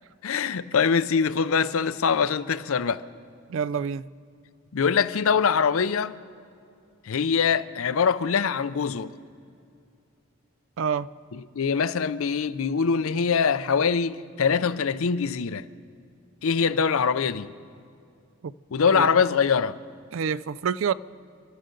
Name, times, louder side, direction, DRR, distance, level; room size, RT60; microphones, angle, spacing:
voice 1, 0.2-3.0 4.7-6.1 7.0-9.1 11.3-15.7 16.4-17.5 18.7-19.8, left 6 dB, 75° left, 0.5 m, -23 dB
voice 2, 3.5-4.1 10.8-11.1 18.4-18.5 18.9-19.0 20.1-20.9, right 7 dB, 65° right, 0.3 m, -27 dB
29.5 x 12.0 x 3.8 m
head